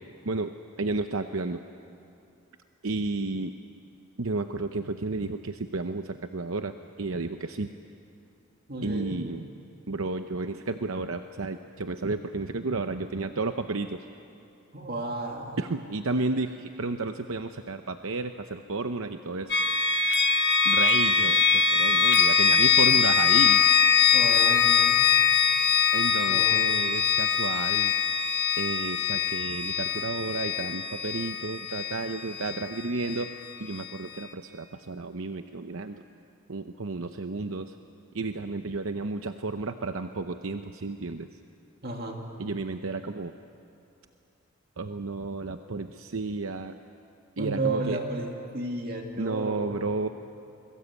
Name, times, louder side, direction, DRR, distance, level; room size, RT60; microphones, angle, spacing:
voice 1, 0.2-1.6 2.8-3.5 4.2-7.7 8.8-9.5 9.9-14.0 15.6-19.6 20.6-23.6 25.9-27.9 28.6-33.3 33.6-36.0 36.5-37.8 38.1-41.3 42.4-43.3 44.8-46.8 47.4-48.0 49.2-50.1, right 3 dB, 65° right, 7 dB, 0.8 m, -32 dB
voice 2, 8.7-9.2 14.7-15.6 24.1-25.1 26.3-26.7 41.8-42.2 47.4-49.8, right 2 dB, 45° right, 1 dB, 2.6 m, -33 dB
sound 1, 19.5-33.3, left 7 dB, 50° left, 1.5 m, -23 dB
29.0 x 22.0 x 8.3 m, 2.6 s
head